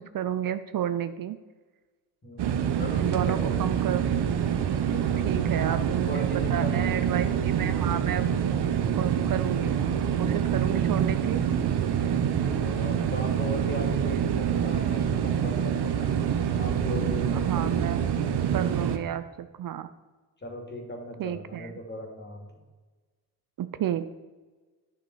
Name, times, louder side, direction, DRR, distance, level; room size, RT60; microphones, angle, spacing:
voice 1, 0.0-1.4 2.6-4.3 5.2-8.4 8.9-9.8 10.2-11.4 14.1-14.3 17.3-18.0 18.5-19.9 21.2-21.7 23.6-24.1, right 10 dB, 55° right, 11 dB, 0.6 m, -32 dB
voice 2, 2.2-3.8 4.9-7.2 10.7-10.8 12.3-16.1 16.5-17.4 20.4-22.5, left 1 dB, 25° left, 2 dB, 2.7 m, -38 dB
sound 1, 2.4-19.0, right 8 dB, 75° right, 0.9 m, -26 dB
10.5 x 6.1 x 4.8 m, 1.3 s
cardioid pair, 85°, 40 cm